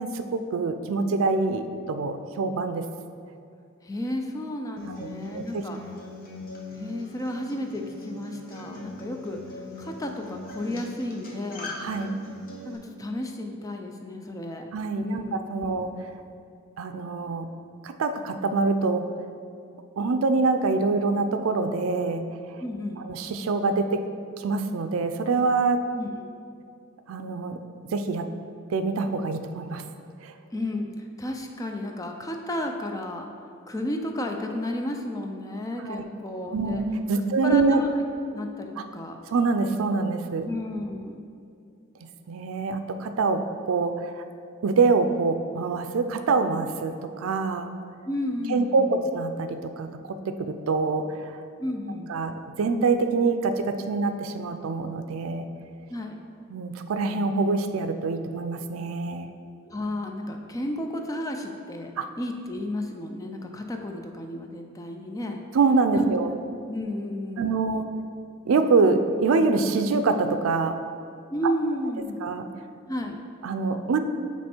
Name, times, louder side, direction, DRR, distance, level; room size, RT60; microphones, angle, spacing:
voice 1, 0.0-2.9 5.0-5.1 5.3-5.6 11.8-12.1 14.7-15.9 16.8-17.5 17.8-19.0 20.0-22.3 23.0-24.0 24.4-25.8 27.1-27.6 27.9-28.3 28.7-29.8 30.2-30.3 35.8-36.0 36.5-37.8 38.8-38.9 39.3-40.5 42.3-44.2 44.6-47.7 48.5-51.4 52.1-52.3 52.6-55.5 56.5-59.3 62.0-62.1 65.5-66.3 67.4-67.9 68.5-70.8 72.2-72.5 73.4-74.0, right 4 dB, 90° right, 8 dB, 0.4 m, -25 dB
voice 2, 3.8-5.8 6.8-11.8 12.6-14.7 15.0-15.9 22.6-23.1 25.9-26.4 30.5-33.3 33.7-36.8 37.4-37.9 38.3-39.2 40.4-41.3 48.0-49.1 51.6-52.1 55.9-56.2 59.7-65.4 65.9-66.4 66.7-67.6 71.3-72.2 72.9-73.2, left 1 dB, 15° left, 3 dB, 0.4 m, -33 dB
Acoustic guitar, 4.8-12.8, left 2 dB, 45° left, 0.8 m, -41 dB
8.6 x 3.1 x 4.4 m, 2.4 s
head